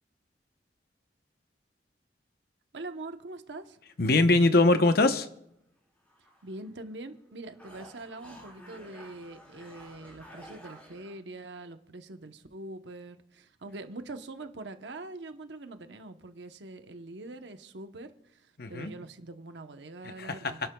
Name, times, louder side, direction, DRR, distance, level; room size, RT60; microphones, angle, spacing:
voice 1, 2.7-3.8 6.4-20.6, right 2 dB, 80° right, 8 dB, 0.9 m, -43 dB
sound 1, 3.7-4.4 4.9-5.0 6.0-7.0 7.2-11.2, equal, 10° left, 3.9 m, -52 dB
voice 2, 4.0-5.3 18.6-18.9 20.0-20.5, left 2 dB, 60° left, 9 dB, 0.9 m, -22 dB
28.5 x 11.5 x 2.3 m, 0.77 s
head